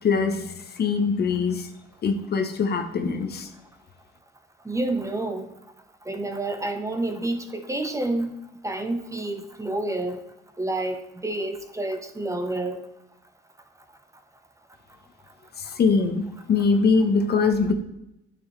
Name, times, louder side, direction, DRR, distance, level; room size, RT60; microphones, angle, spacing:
voice 1, 0.0-1.7 2.0-3.5 15.6-17.7, left 4 dB, 55° left, 6 dB, 1.1 m, -23 dB
voice 2, 4.6-5.5 6.1-8.3 8.6-10.2 10.6-12.8, right 2 dB, 15° right, 6 dB, 1.0 m, -29 dB
9.4 x 7.1 x 3.3 m, 0.85 s
cardioid pair, 90°, 20 cm